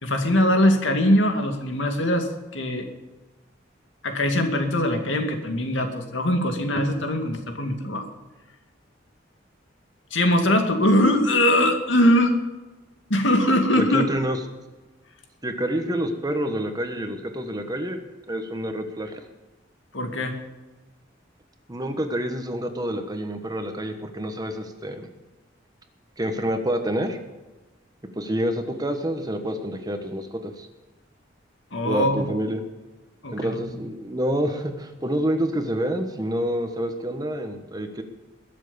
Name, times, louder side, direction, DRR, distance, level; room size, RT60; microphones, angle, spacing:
voice 1, 0.0-2.3 2.5-2.9 4.0-8.1 10.1-12.3 13.1-14.0 19.9-20.3 31.7-32.2 33.2-33.6, left 1 dB, 75° left, 5 dB, 2.3 m, -21 dB
voice 2, 13.8-14.4 15.4-18.0 18.3-19.2 21.7-25.1 26.2-27.2 28.2-30.7 31.8-32.6 33.3-38.0, equal, 20° right, 6 dB, 1.4 m, -28 dB
21.5 x 7.5 x 7.1 m, 1.1 s
head